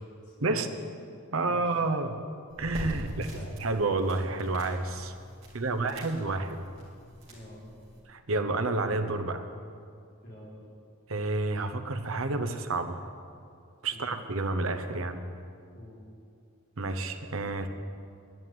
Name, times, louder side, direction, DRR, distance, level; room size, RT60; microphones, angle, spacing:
voice 1, 0.2-0.8 1.4-1.8 3.1-3.6 5.6-6.0 7.3-7.8 10.2-10.6 13.9-14.1 15.7-16.0, left 1 dB, 50° left, -5 dB, 4.2 m, -46 dB
voice 2, 1.3-2.2 2.6-5.1 5.5-6.6 8.1-9.4 11.1-13.0 13.8-15.2 16.8-17.7, right 3 dB, 70° right, 8 dB, 1.0 m, -30 dB
sound 1, 2.5-8.0, equal, 30° right, 3.5 m, -44 dB
11.0 x 10.5 x 9.3 m, 2.4 s
head